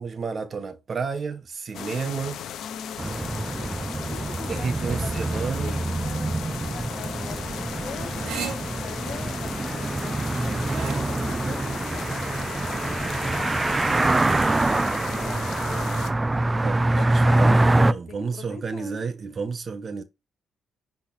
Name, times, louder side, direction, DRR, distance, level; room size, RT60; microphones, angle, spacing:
voice 1, 0.0-2.4 4.5-5.7 16.6-20.0, right 5 dB, 45° right, 1.3 m, -31 dB
sound 1, 1.7-16.1, left 9 dB, 75° left, 1.0 m, -37 dB
voice 2, 2.6-6.3 6.7-12.1 12.7-15.9 16.4-16.6 16.9-19.0, left 6 dB, 60° left, 1.6 m, -43 dB
sound 2, 3.0-17.9, right 2 dB, 20° right, 0.4 m, -25 dB
sound 3, 5.6-11.0, right 6 dB, 85° right, 2.1 m, -39 dB
10.0 x 4.2 x 4.2 m
cardioid pair, 90°, 0 cm